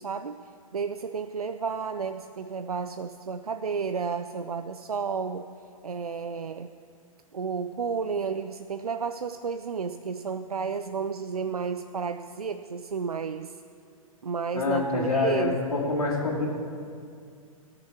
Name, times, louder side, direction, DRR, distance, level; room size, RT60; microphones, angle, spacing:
voice 1, 0.0-5.5 5.8-6.7 7.3-13.6 14.2-15.9, right 5 dB, 85° right, 10 dB, 0.5 m, -32 dB
voice 2, 14.5-16.5, left 3 dB, 85° left, -7 dB, 3.0 m, -26 dB
16.5 x 6.8 x 7.2 m, 2.3 s
figure-of-eight pair, 110°, 19 cm